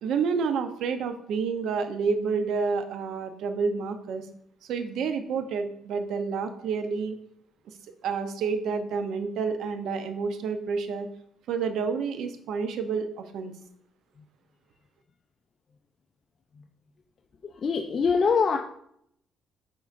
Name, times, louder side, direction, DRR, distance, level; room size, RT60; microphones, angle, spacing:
voice 1, 0.0-4.3 4.6-7.2 8.0-11.1 11.5-13.5, right 5 dB, 80° right, 8 dB, 0.7 m, -29 dB
voice 2, 17.6-18.6, left 5 dB, 50° left, 3 dB, 0.5 m, -23 dB
9.6 x 3.9 x 2.5 m, 0.69 s
cardioid pair, 90°, 0 cm